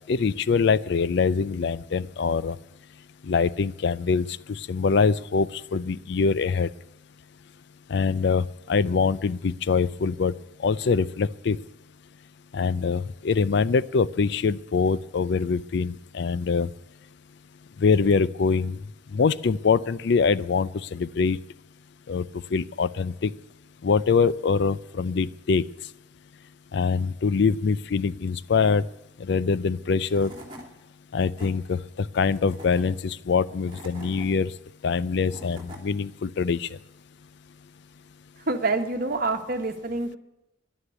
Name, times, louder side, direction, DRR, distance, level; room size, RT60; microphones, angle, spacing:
voice 1, 0.1-2.6 3.2-6.7 7.9-10.3 10.6-11.6 12.5-16.7 17.8-18.8 19.1-21.4 22.1-22.3 22.5-23.3 23.8-25.6 26.7-28.8 29.2-30.3 31.1-34.5 34.8-36.7, left 5 dB, 60° left, 18 dB, 0.4 m, -24 dB
Tools / Wood, 29.7-29.8 30.1-30.7 31.1-31.5 32.2-32.8 33.5-34.3 35.0-35.8, equal, 25° right, 2.7 m, -44 dB
voice 2, 38.5-40.2, right 3 dB, 50° right, 6 dB, 1.4 m, -26 dB
11.0 x 9.9 x 9.2 m, 0.93 s
head